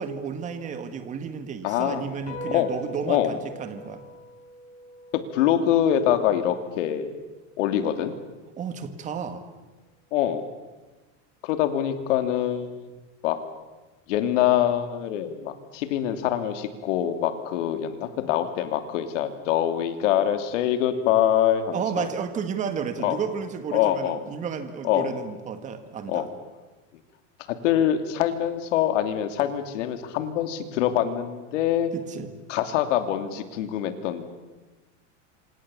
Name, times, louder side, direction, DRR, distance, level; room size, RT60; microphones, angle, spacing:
voice 1, 0.0-4.0 8.6-9.4 21.7-26.3 31.9-32.3, right 6 dB, 20° right, 9 dB, 1.8 m, -32 dB
voice 2, 1.6-2.0 2.5-2.7 3.1-3.4 5.3-7.2 7.6-8.1 10.1-10.5 11.4-12.9 13.2-13.4 14.1-22.1 23.0-23.2 23.7-24.2 24.8-25.1 26.1-26.3 27.5-31.9 32.5-34.2, left 10 dB, 75° left, 8 dB, 3.0 m, -24 dB
sound 1, 2.3-9.0, equal, 40° left, 5.7 m, -43 dB
27.0 x 26.5 x 7.2 m, 1.2 s
supercardioid pair, 175°, 37 cm